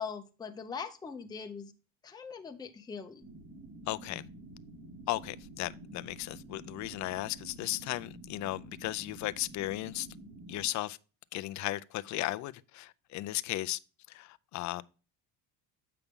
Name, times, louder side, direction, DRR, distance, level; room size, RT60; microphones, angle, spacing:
voice 1, 0.0-1.7 2.0-3.3, left 6 dB, 10° left, 0.7 m, -41 dB
sound 1, 3.2-10.7, right 2 dB, 60° right, 4.5 m, -49 dB
voice 2, 3.9-4.3 5.1-10.1 10.5-11.0 11.3-13.8 14.1-14.8, left 17 dB, 40° left, 0.4 m, -35 dB
8.1 x 5.8 x 3.5 m
cardioid pair, 125°, 45 cm